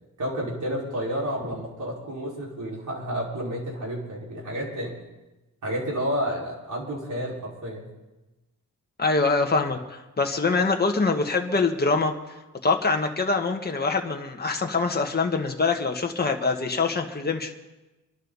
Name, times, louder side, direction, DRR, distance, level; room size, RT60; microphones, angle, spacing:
voice 1, 0.2-4.9 5.6-7.9, equal, 60° right, -4 dB, 5.3 m, -30 dB
voice 2, 9.0-12.1 12.6-17.5, left 4 dB, 30° left, 3 dB, 1.6 m, -24 dB
26.0 x 12.0 x 4.2 m, 1.1 s
cardioid pair, 90°, 34 cm